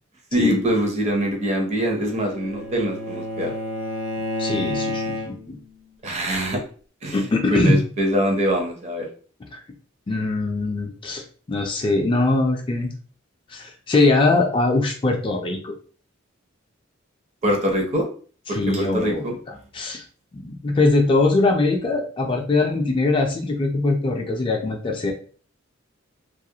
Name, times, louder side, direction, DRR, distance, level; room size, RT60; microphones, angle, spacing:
voice 1, 0.3-3.5 6.0-6.6 7.0-9.1 17.4-18.1 18.5-19.4, right 1 dB, 35° right, 2 dB, 0.6 m, -23 dB
Bowed string instrument, 1.7-5.6, left 1 dB, 80° right, 0.5 m, -30 dB
voice 2, 4.4-5.6 7.1-7.8 9.5-9.6 10.1-11.2 11.5-12.9 13.5-15.7 18.5-19.3 19.7-20.0 20.3-25.1, left 3 dB, 25° left, 2 dB, 0.3 m, -21 dB
2.3 x 2.0 x 2.7 m, 0.41 s
head